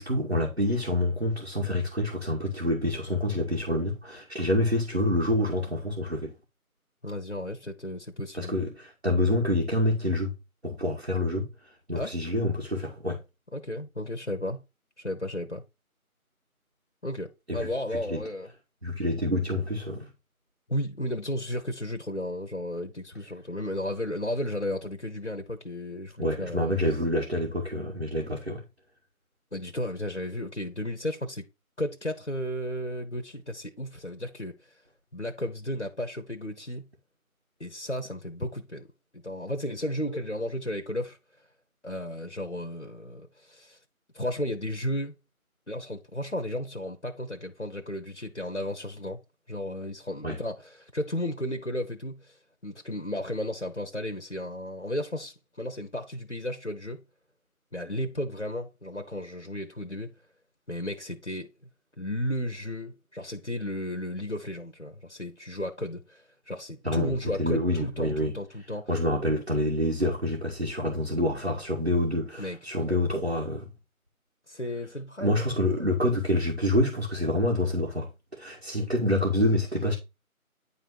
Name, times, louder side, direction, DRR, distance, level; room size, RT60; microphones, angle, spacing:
voice 1, 0.0-6.3 8.3-10.3 10.6-11.5 11.9-13.2 17.5-18.2 18.8-20.1 26.2-28.6 50.2-50.4 66.8-68.3 68.9-73.7 75.2-80.0, left 1 dB, 50° right, 2.1 m, -27 dB
voice 2, 7.0-8.5 11.9-12.1 13.5-14.6 15.0-15.6 17.0-18.5 20.7-26.8 27.1-27.2 29.5-31.5 31.8-34.8 35.1-36.8 37.6-38.9 39.1-41.2 41.8-43.8 44.1-45.1 45.7-49.2 49.5-57.0 57.7-60.1 60.7-61.5 62.0-68.9 72.4-72.6 72.9-73.0 74.5-75.4 75.8-75.9, left 1 dB, 50° left, 1.0 m, -34 dB
10.0 x 4.0 x 4.4 m
figure-of-eight pair, 180°, 44 cm